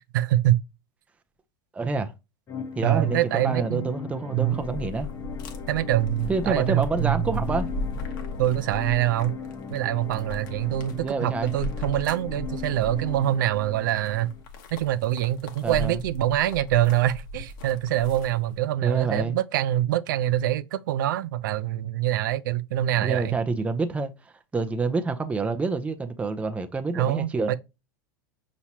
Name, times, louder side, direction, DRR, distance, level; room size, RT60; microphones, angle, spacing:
voice 1, 0.1-0.6 2.8-3.9 4.3-4.6 5.7-7.4 8.4-9.3 9.7-14.3 14.7-23.4 26.9-27.6, right 13 dB, 75° right, 0.4 m, -25 dB
voice 2, 1.7-2.1 2.8-5.1 6.3-7.7 11.0-11.5 15.6-16.0 18.8-19.4 23.0-27.6, right 4 dB, 10° right, 0.5 m, -27 dB
sound 1, 2.5-14.4, left 6 dB, 25° left, 0.7 m, -39 dB
sound 2, 4.5-18.6, left 3 dB, 65° left, 1.1 m, -37 dB
5.6 x 3.0 x 2.7 m
hypercardioid pair, 100°, 11 cm